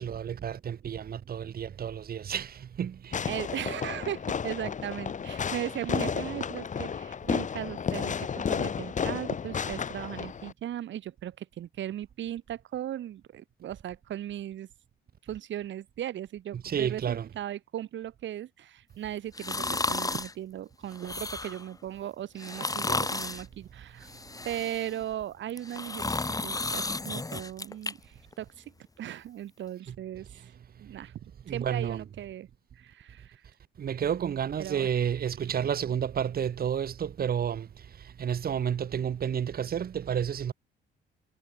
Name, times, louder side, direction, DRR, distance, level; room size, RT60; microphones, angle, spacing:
voice 1, 0.0-3.3 16.6-17.3 29.9-30.0 31.5-32.0 33.8-40.5, right 8 dB, 50° right, 1.3 m, -31 dB
Fireworks, 3.1-10.5, left 7 dB, 40° left, 1.1 m, -32 dB
voice 2, 3.3-14.7 15.3-24.1 24.5-28.6 29.0-30.5 30.8-31.1 31.5-32.5 32.8-33.4 34.6-34.9 35.4-35.5, right 11 dB, 70° right, 1.9 m, -37 dB
sound 1, 19.3-20.3 20.9-21.7 22.4-23.4 24.0-25.0 25.5-27.9 28.3-28.4, left 3 dB, 15° left, 2.3 m, -33 dB
cardioid pair, 90°, 20 cm